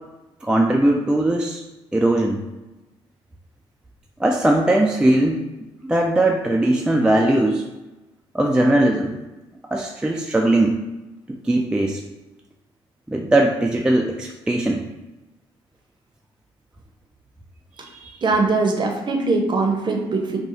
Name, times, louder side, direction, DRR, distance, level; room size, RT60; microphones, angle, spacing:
voice 1, 0.4-1.6 1.9-2.4 4.2-5.4 5.8-7.6 8.3-9.1 9.7-10.8 11.3-12.0 13.1-14.8 17.8-18.2, right 1 dB, 5° right, 1 dB, 0.3 m, -19 dB
voice 2, 18.2-20.4, right 3 dB, 35° right, 2 dB, 0.7 m, -21 dB
4.0 x 2.3 x 2.7 m, 1.1 s
figure-of-eight pair, 45°, 14 cm